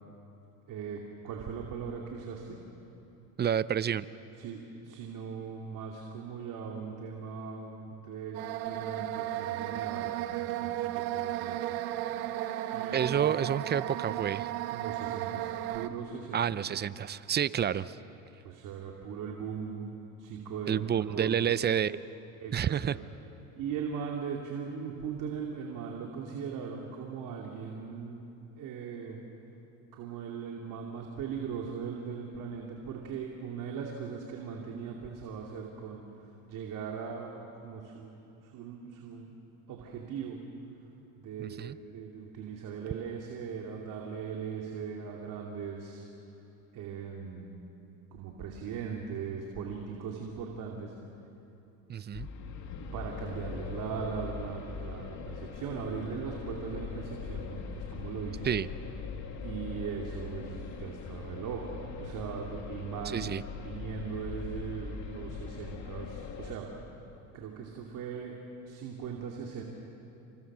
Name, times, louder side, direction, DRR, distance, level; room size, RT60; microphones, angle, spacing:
voice 1, 0.7-2.6 4.4-11.7 12.7-13.4 14.7-16.4 18.4-19.9 20.2-21.3 22.4-23.0 23.6-28.2 28.6-29.2 29.9-38.1 38.4-39.3 39.7-40.4 41.2-46.0 46.7-47.5 48.1-50.9 52.9-58.5 59.4-66.7 67.3-68.3 68.6-69.6, right 6 dB, 55° right, 0 dB, 2.9 m, -39 dB
voice 2, 3.4-4.1 12.9-14.5 16.3-18.0 20.7-22.0 22.5-22.9 41.4-41.8 51.9-52.3 58.4-58.7 63.1-63.4, right 9 dB, 25° right, 16 dB, 0.7 m, -29 dB
sound 1, 8.3-15.9, right 14 dB, 70° right, 1.4 m, -34 dB
sound 2, 52.1-66.6, left 5 dB, 45° left, 2.6 m, -41 dB
29.0 x 27.0 x 6.2 m, 2.9 s
supercardioid pair, 95°, 38 cm